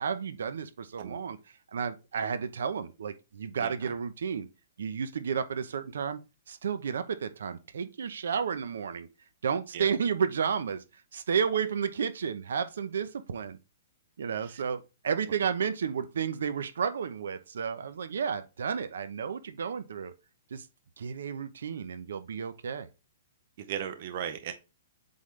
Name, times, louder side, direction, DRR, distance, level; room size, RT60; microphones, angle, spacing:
voice 1, 0.0-1.4 1.7-4.5 4.8-6.2 6.5-9.1 9.4-10.8 11.1-13.6 14.2-20.1 20.5-20.7 21.0-22.9, right 6 dB, 80° right, 0.8 m, -32 dB
voice 2, 3.6-3.9 9.7-9.9 14.4-14.6 23.6-24.5, right 9 dB, 40° right, 0.8 m, -37 dB
7.9 x 3.7 x 3.2 m
hypercardioid pair, 175°, 0 cm